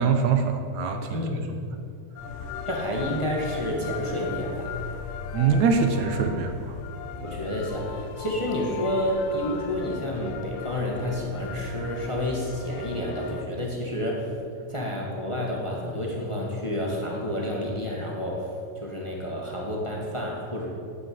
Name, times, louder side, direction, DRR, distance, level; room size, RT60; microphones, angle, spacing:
voice 1, 0.0-1.3 5.3-6.8, right 5 dB, 70° right, 6 dB, 2.0 m, -23 dB
voice 2, 1.1-1.6 2.6-4.8 7.2-14.3 14.7-20.7, left 1 dB, 30° left, -2 dB, 0.5 m, -30 dB
sound 1, 2.2-13.5, left 5 dB, 75° left, 2.3 m, -37 dB
9.7 x 9.0 x 9.5 m, 2.4 s
omnidirectional pair, 3.9 m